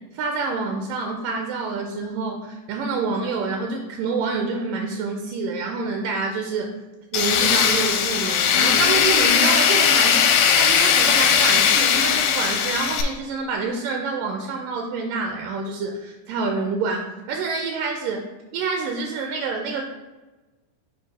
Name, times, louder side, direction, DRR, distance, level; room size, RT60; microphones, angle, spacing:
voice 1, 0.1-6.7 7.1-18.2 18.5-19.8, right 4 dB, 80° right, 3 dB, 2.1 m, -27 dB
Tools, 7.1-13.0, left 8 dB, 85° left, 2.2 m, -18 dB
6.5 x 2.7 x 5.4 m, 1.2 s
omnidirectional pair, 4.0 m